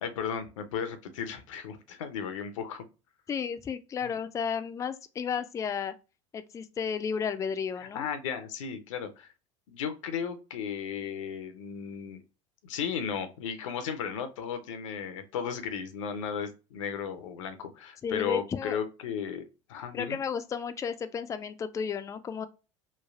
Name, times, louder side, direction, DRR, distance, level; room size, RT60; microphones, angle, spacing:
voice 1, 0.0-2.8 4.0-4.1 7.8-9.3 9.7-12.2 12.6-20.2, left 7 dB, 75° left, 0.6 m, -35 dB
voice 2, 3.3-5.9 6.3-8.1 18.0-18.8 19.9-22.5, left 6 dB, 20° left, 0.3 m, -33 dB
3.2 x 2.3 x 2.4 m
hypercardioid pair, 80°, 16 cm